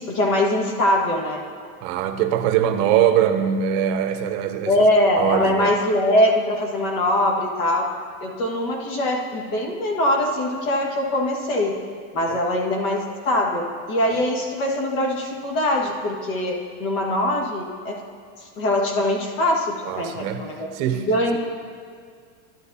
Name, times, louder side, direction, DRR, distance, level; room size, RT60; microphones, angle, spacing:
voice 1, 0.0-1.4 4.6-7.9 8.2-11.7 12.1-18.0 18.4-20.7 20.9-21.4, left 1 dB, 75° left, 0 dB, 1.8 m, -22 dB
voice 2, 1.8-4.9 5.2-5.7 12.3-12.4 14.1-14.2 19.9-20.4 20.7-21.0, right 9 dB, 50° right, 8 dB, 0.7 m, -22 dB
12.0 x 9.5 x 2.7 m, 2.2 s
supercardioid pair, 145°, 43 cm